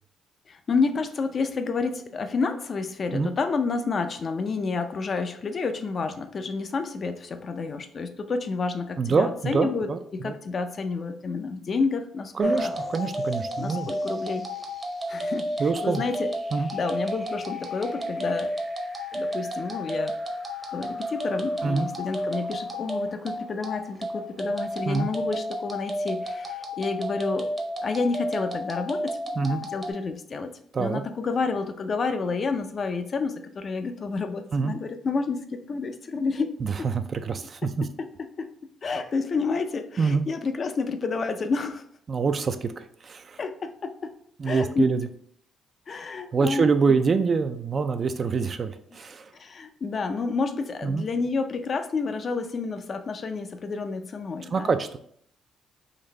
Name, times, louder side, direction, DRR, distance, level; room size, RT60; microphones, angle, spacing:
voice 1, 0.5-12.7 13.6-14.5 15.1-15.5 15.8-16.3 16.7-18.5 19.1-20.1 20.7-27.5 27.8-30.5 30.8-36.9 38.4-38.5 38.8-41.8 43.4-44.1 44.4-44.8 45.9-46.7 49.3-54.7, left 4 dB, 45° left, 8 dB, 0.4 m, -29 dB
voice 2, 9.0-10.3 12.4-13.9 15.6-16.0 16.5-16.7 21.6-21.9 24.9-25.1 29.4-29.6 30.7-31.0 34.5-34.8 36.6-37.8 40.0-40.2 42.1-43.4 44.4-45.1 46.3-49.3 50.8-51.1 54.5-55.0, right 4 dB, 40° right, 9 dB, 0.3 m, -25 dB
sound 1, 12.4-29.9, equal, 25° right, 0.7 m, -31 dB
3.9 x 2.6 x 3.2 m, 0.64 s
cardioid pair, 95°, 0 cm